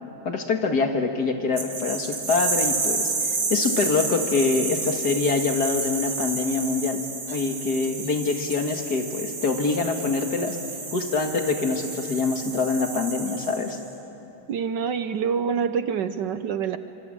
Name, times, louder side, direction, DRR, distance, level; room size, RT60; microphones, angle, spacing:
voice 1, 0.2-7.0 7.3-10.6 10.9-13.8, left 4 dB, 50° left, 4 dB, 2.3 m, -25 dB
sound 1, 1.6-13.9, right 4 dB, 80° right, 3.7 m, -30 dB
voice 2, 14.5-16.8, right 7 dB, 65° right, 11 dB, 1.3 m, -26 dB
27.0 x 25.5 x 8.7 m, 2.9 s
omnidirectional pair, 2.2 m